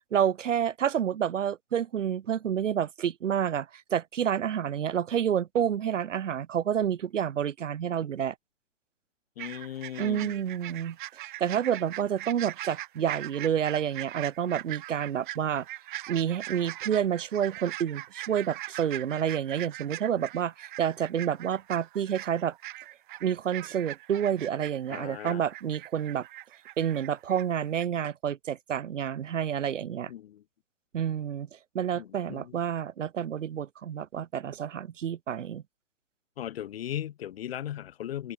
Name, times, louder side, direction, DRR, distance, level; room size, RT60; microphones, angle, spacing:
voice 1, 0.1-8.3 10.0-11.0 11.4-15.7 16.1-22.5 23.2-26.3 26.8-30.1 30.9-31.5 31.7-35.6, right 9 dB, 85° right, 0.6 m, -29 dB
voice 2, 9.4-10.4 24.9-25.4 30.1-30.4 31.9-32.5 36.4-38.3, left 11 dB, 55° left, 1.0 m, -37 dB
sound 1, 9.4-27.5 27.7-27.9, right 15 dB, 40° right, 3.7 m, -41 dB
hypercardioid pair, 135°, 36 cm